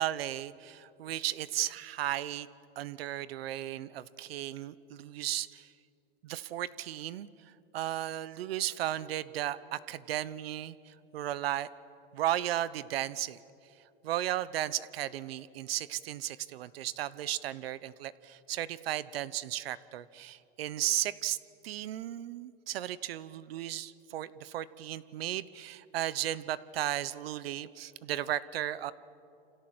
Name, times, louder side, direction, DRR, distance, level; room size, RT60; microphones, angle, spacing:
voice 1, 0.0-2.5 2.8-5.7 6.2-7.3 7.7-11.7 12.1-13.4 14.0-21.4 21.6-28.9, right 13 dB, 80° right, 17 dB, 1.0 m, -35 dB
28.5 x 26.5 x 7.8 m, 2.7 s
supercardioid pair, 135°, 29 cm